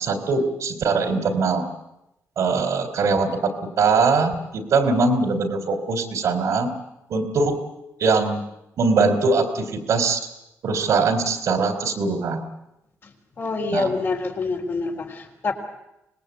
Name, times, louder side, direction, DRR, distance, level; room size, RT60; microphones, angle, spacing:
voice 1, 0.0-1.6 2.4-6.7 7.1-7.6 8.0-8.4 8.8-10.2 10.6-12.4 13.7-13.9, right 4 dB, 80° right, 8 dB, 3.2 m, -21 dB
voice 2, 13.4-15.5, left 3 dB, 50° left, 2 dB, 3.7 m, -26 dB
25.5 x 19.5 x 8.3 m, 0.87 s
wide cardioid pair, 125°, 5 cm